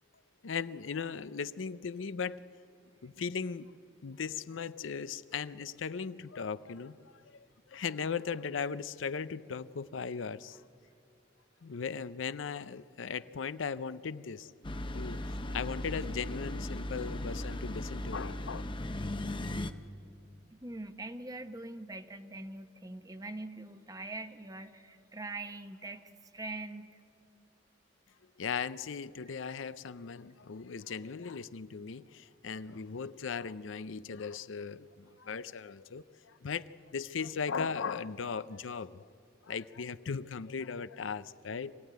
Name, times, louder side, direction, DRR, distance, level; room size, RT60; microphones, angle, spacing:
voice 1, 0.4-2.4 3.0-3.7 4.0-7.0 7.3-7.5 7.7-10.6 11.6-14.5 14.9-18.6 28.4-34.9 35.2-39.0 39.5-41.7, left 6 dB, 90° left, 15 dB, 0.6 m, -38 dB
sound 1, 14.6-19.7, left 1 dB, 25° left, 0.8 m, -37 dB
voice 2, 20.5-26.9 29.3-29.4, right 2 dB, 20° right, 9 dB, 0.9 m, -43 dB
25.0 x 16.0 x 9.4 m, 2.5 s
head